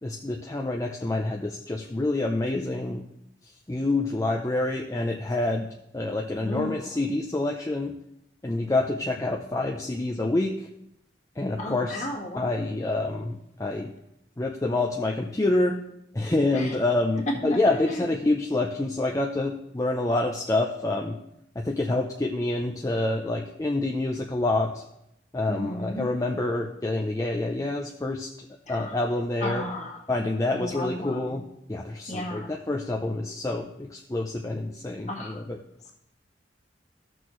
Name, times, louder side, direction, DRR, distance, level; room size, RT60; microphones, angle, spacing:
voice 1, 0.0-3.0 3.7-5.7 5.9-7.9 8.4-10.7 11.4-12.0 12.4-13.9 14.4-15.8 16.1-21.2 21.6-24.8 25.3-28.3 28.7-29.6 30.1-31.4 31.7-35.6, left 2 dB, 20° left, 1 dB, 0.5 m, -27 dB
voice 2, 6.4-6.9 11.6-12.5 16.5-16.7 17.3-18.1 25.5-26.0 28.7-29.0 29.4-30.0 30.5-31.4 32.1-32.5 35.1-35.4, left 1 dB, 40° left, -1 dB, 1.6 m, -34 dB
14.5 x 6.2 x 3.1 m, 0.81 s
head